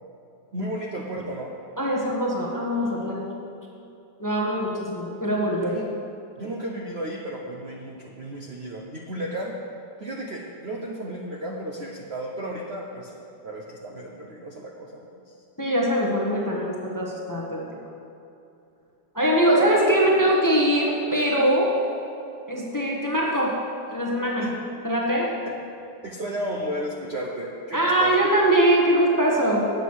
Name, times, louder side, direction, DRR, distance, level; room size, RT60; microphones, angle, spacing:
voice 1, 0.5-1.5 5.6-5.9 6.4-9.6 10.0-13.1 13.4-15.3 24.4-24.5 25.4-25.5 26.0-28.1, right 1 dB, 50° right, -1 dB, 0.8 m, -33 dB
voice 2, 1.8-3.2 4.2-5.8 15.6-17.8 19.1-21.7 22.5-23.6 23.9-24.5 24.8-25.3 27.7-29.7, right 1 dB, 15° left, -3 dB, 0.9 m, -22 dB
9.2 x 7.9 x 6.4 m, 2.8 s
omnidirectional pair, 2.1 m